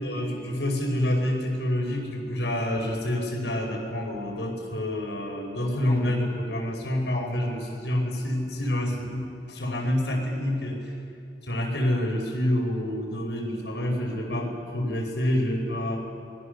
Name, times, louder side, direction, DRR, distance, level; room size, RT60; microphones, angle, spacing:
voice 1, 0.0-10.9 11.4-16.0, left 1 dB, 80° left, 1 dB, 5.1 m, -27 dB
28.5 x 22.0 x 6.8 m, 2.5 s
head